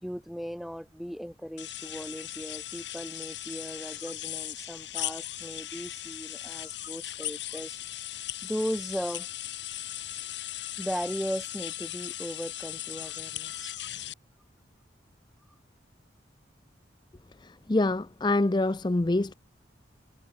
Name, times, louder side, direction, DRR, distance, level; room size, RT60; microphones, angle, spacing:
voice 1, 0.0-7.8 8.4-9.3 10.8-13.7, equal, ahead, 2.2 m, -37 dB
sound 1, 1.6-14.1, left 13 dB, 75° left, 4.5 m, -38 dB
voice 2, 17.4-19.3, left 2 dB, 25° left, 0.5 m, -26 dB
head